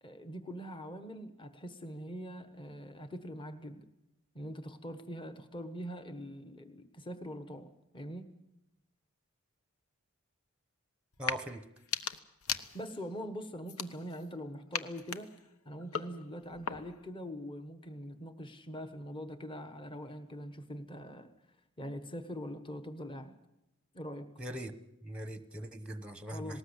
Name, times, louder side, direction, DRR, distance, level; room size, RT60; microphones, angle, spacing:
voice 1, 0.0-3.8 4.3-8.3 12.7-15.3 15.6-21.3 21.8-23.3 23.9-24.3 26.3-26.6, equal, 20° left, 1.2 m, -43 dB
sound 1, 11.1-11.4 11.8-13.1 13.6-14.3 14.7-17.1, left 7 dB, 75° left, 1.0 m, -39 dB
voice 2, 11.2-11.6 24.4-24.7 25.0-26.6, right 1 dB, 5° right, 0.9 m, -41 dB
19.0 x 19.0 x 8.1 m
head